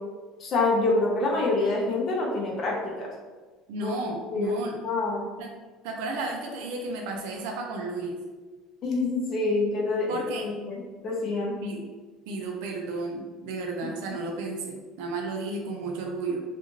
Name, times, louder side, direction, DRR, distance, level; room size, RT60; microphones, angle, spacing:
voice 1, 0.4-3.1 3.8-3.9 4.3-4.5 4.8-5.3 8.8-10.1 10.4-11.6 13.8-13.9, left 3 dB, 35° left, -3 dB, 0.6 m, -26 dB
voice 2, 3.7-4.7 5.4-5.5 5.8-8.2 10.1-10.5 11.6-11.8 12.3-16.4, right 2 dB, 85° right, 1 dB, 0.4 m, -33 dB
2.5 x 2.4 x 2.9 m, 1.4 s
cardioid pair, 155°, 0 cm